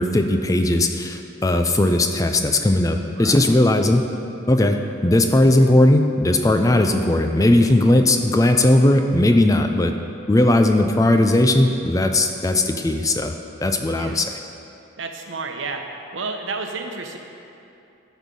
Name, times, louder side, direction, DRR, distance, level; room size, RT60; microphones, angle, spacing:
voice 1, 0.0-4.1 4.5-9.9 10.3-13.3 13.6-14.3, left 1 dB, 15° left, 5 dB, 0.4 m, -18 dB
voice 2, 3.2-3.6 13.9-14.2 15.0-15.8 16.1-17.2, right 4 dB, 75° right, 4 dB, 0.9 m, -31 dB
12.5 x 6.3 x 5.3 m, 2.7 s
head